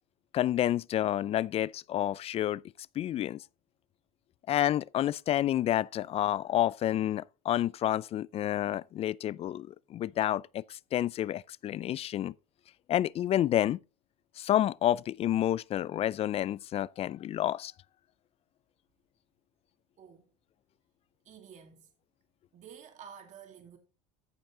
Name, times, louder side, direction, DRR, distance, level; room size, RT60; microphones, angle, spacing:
voice 1, 0.3-2.6 3.0-3.4 4.5-12.3 12.9-13.8 14.4-17.7, left 12 dB, 35° left, 0.3 m, -29 dB
voice 2, 20.0-20.3 21.2-21.9 22.5-23.8, right 8 dB, 45° right, 2.2 m, -51 dB
14.5 x 5.3 x 3.7 m
supercardioid pair, 95°, 18 cm